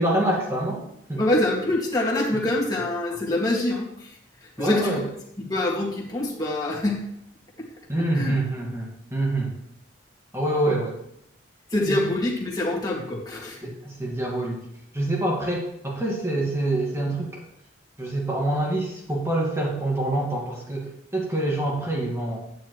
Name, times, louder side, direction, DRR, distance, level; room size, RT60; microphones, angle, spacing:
voice 1, 0.0-1.2 4.6-5.0 7.9-9.6 10.3-11.0 11.9-12.0 13.6-14.6 14.9-17.4 18.0-22.4, right 1 dB, 15° right, -2 dB, 1.9 m, -26 dB
voice 2, 1.2-5.0 5.5-7.0 7.6-7.7 8.1-8.4 10.7-10.8 11.7-13.7, left 1 dB, 20° left, -4 dB, 2.3 m, -25 dB
10.0 x 9.3 x 3.2 m, 0.78 s
head